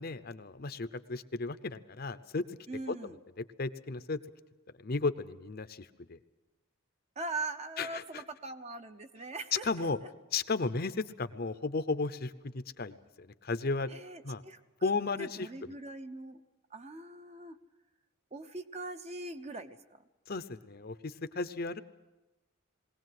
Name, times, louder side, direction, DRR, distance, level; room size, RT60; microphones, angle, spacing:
voice 1, 0.0-2.4 2.9-3.0 3.4-4.2 4.8-6.2 7.8-8.2 9.6-10.0 10.3-13.9 14.2-14.4 14.8-15.7 20.3-21.8, left 3 dB, 45° left, 12 dB, 0.7 m, -34 dB
voice 2, 2.7-3.2 7.2-9.9 13.9-14.9 15.2-16.4 16.7-17.6 18.3-19.8, right 2 dB, 30° right, 8 dB, 0.8 m, -41 dB
21.0 x 17.5 x 7.8 m, 1.1 s
head